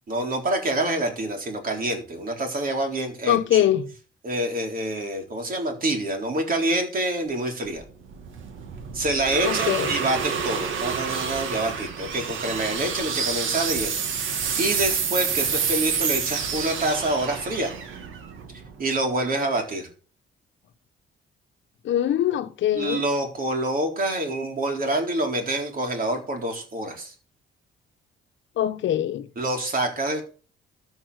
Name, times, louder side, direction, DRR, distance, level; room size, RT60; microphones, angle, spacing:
voice 1, 0.1-3.6 4.2-7.8 8.9-14.3 14.6-17.7 18.8-19.9 22.7-27.1 29.4-30.2, right 1 dB, 45° right, 4.1 m, -27 dB
voice 2, 3.3-3.9 9.4-10.0 21.8-23.0 28.6-29.3, left 11 dB, 70° left, 1.0 m, -23 dB
sound 1, 7.7-19.0, right 6 dB, 80° right, 2.3 m, -28 dB
13.5 x 5.6 x 6.4 m
cardioid pair, 90°, 20 cm